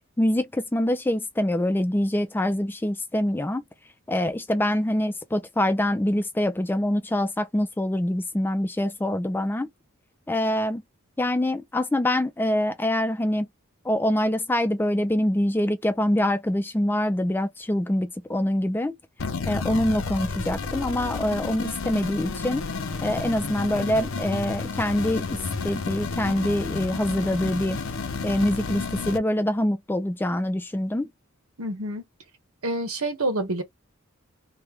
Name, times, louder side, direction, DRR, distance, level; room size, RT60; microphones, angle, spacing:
voice 1, 0.2-3.6 4.1-9.7 10.3-10.8 11.2-13.5 13.8-19.0 19.5-22.6 23.0-27.8 28.2-31.1, left 1 dB, 10° left, 0.3 m, -25 dB
sound 1, 19.2-29.2, left 4 dB, 65° left, 0.6 m, -31 dB
voice 2, 31.6-32.0 32.6-33.6, right 1 dB, 85° right, 1.2 m, -27 dB
3.1 x 2.1 x 3.4 m
head